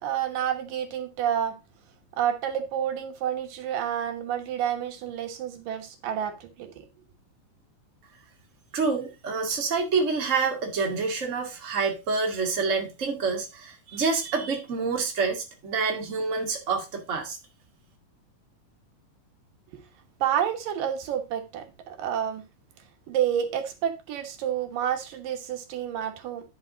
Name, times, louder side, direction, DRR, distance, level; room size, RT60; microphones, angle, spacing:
voice 1, 0.0-1.5 2.2-6.8 19.7-19.8 20.2-22.4 23.1-26.4, right 9 dB, 80° right, 2.9 m, -29 dB
voice 2, 8.7-17.4, right 4 dB, 25° right, 2.1 m, -27 dB
10.5 x 5.6 x 3.9 m
omnidirectional pair, 3.8 m